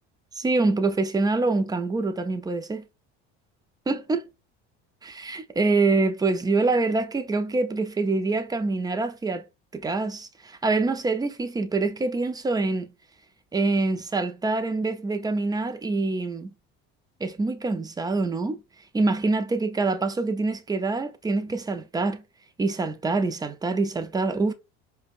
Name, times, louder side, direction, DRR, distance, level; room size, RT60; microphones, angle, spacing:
voice 1, 0.4-2.8 3.9-4.2 5.0-9.4 9.7-12.9 13.5-16.5 17.2-18.6 18.9-22.2 22.6-24.5, right 3 dB, 15° right, 0.5 m, -25 dB
5.0 x 2.2 x 2.4 m
supercardioid pair, 105°, 31 cm